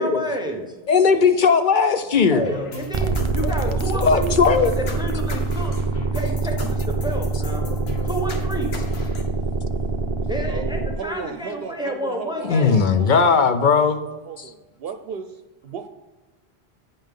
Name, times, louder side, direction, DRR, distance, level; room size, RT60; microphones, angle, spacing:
voice 1, 0.0-0.7 2.3-5.7 6.1-7.6 8.0-8.7 10.3-12.8, equal, 5° right, 2 dB, 0.8 m, -30 dB
voice 2, 0.9-2.4 3.4-4.7 12.4-14.0, left 5 dB, 55° left, 8 dB, 0.7 m, -18 dB
sound 1, 2.4-9.2, left 2 dB, 75° left, 1.3 m, -36 dB
sound 2, 2.9-11.0, right 3 dB, 40° right, 0.4 m, -25 dB
voice 3, 10.5-15.4 15.6-15.9, right 6 dB, 70° right, 8 dB, 0.8 m, -35 dB
9.0 x 5.4 x 3.7 m, 1.1 s
omnidirectional pair, 1.1 m